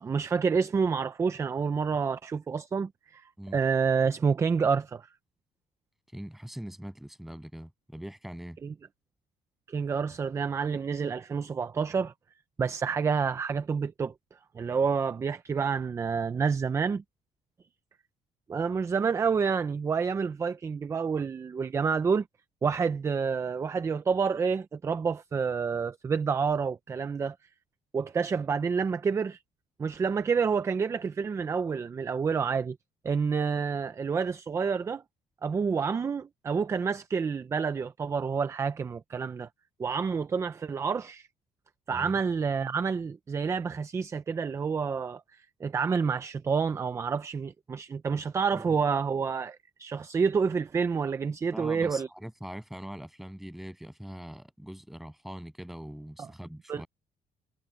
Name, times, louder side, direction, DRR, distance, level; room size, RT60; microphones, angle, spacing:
voice 1, 0.0-3.2 3.5-5.1 8.6-8.7 9.7-12.1 12.6-14.1 14.5-17.0 18.5-22.3 22.6-27.4 27.9-29.4 29.8-32.8 33.0-35.0 35.4-39.5 39.8-41.3 41.9-52.1 56.2-56.3 56.7-56.8, right 5 dB, 20° right, 0.6 m, -28 dB
voice 2, 6.1-8.6 41.9-42.2 48.5-48.8 51.5-56.9, equal, ahead, 7.4 m, -42 dB
cardioid pair, 170°, 14 cm